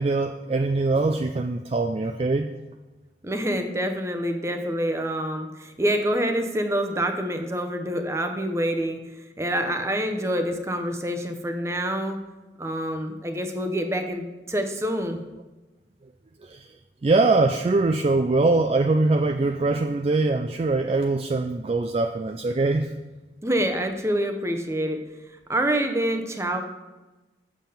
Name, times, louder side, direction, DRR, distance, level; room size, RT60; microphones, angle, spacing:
voice 1, 0.0-2.5 16.4-16.7 17.0-22.9, right 3 dB, 35° right, 5 dB, 0.3 m, -22 dB
voice 2, 3.2-12.2 12.6-15.2 23.4-26.6, right 1 dB, 15° right, 6 dB, 0.8 m, -27 dB
7.5 x 7.1 x 5.6 m, 1.1 s
head